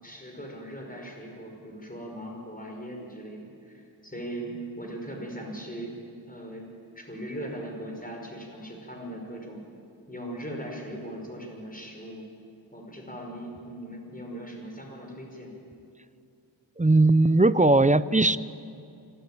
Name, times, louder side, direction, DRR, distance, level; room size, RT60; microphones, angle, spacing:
voice 1, 0.0-5.9 6.3-6.7 6.9-9.6 10.1-12.2 12.7-15.5, right 1 dB, 20° left, 0 dB, 5.4 m, -39 dB
voice 2, 16.8-18.4, right 2 dB, 15° right, 16 dB, 0.5 m, -19 dB
25.0 x 14.0 x 9.1 m, 2.5 s
wide cardioid pair, 65°, 46 cm